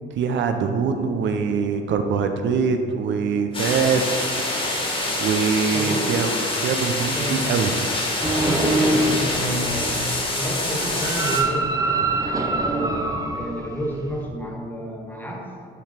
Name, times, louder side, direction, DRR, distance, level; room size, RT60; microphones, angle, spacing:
voice 1, 0.2-4.0 5.2-6.3 6.6-7.8, right 6 dB, 70° right, 6 dB, 0.5 m, -23 dB
sound 1, 3.5-11.4, left 2 dB, 25° left, 1.5 m, -26 dB
voice 2, 5.7-6.1 7.1-7.5 8.3-10.0 10.3-11.8 12.1-15.5, right 1 dB, 10° left, -1 dB, 1.5 m, -30 dB
sound 2, 8.2-14.3, right 2 dB, 15° right, 0.7 m, -25 dB
6.6 x 4.9 x 4.3 m, 2.4 s
cardioid pair, 90°, 20 cm